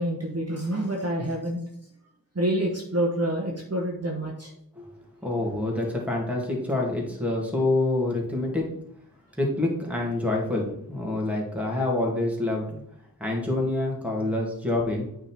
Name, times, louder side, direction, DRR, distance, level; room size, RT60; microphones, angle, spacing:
voice 1, 0.0-1.6 2.3-4.5, right 1 dB, 40° right, -1 dB, 1.3 m, -27 dB
voice 2, 5.2-8.7 9.4-12.8 13.2-15.1, left 2 dB, 5° right, -2 dB, 2.3 m, -27 dB
8.8 x 3.8 x 4.6 m, 0.71 s
wide cardioid pair, 45°, 37 cm